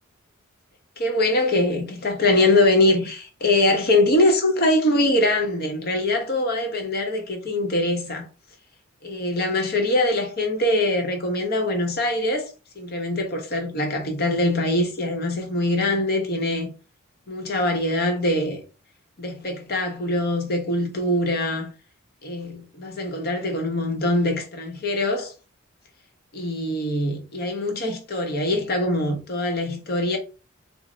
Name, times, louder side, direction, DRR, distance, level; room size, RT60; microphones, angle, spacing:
voice 1, 1.0-8.3 9.0-16.7 17.3-18.6 19.2-21.7 22.2-25.3 26.3-30.2, left 1 dB, 45° left, 0.8 m, -23 dB
3.1 x 2.1 x 3.7 m
head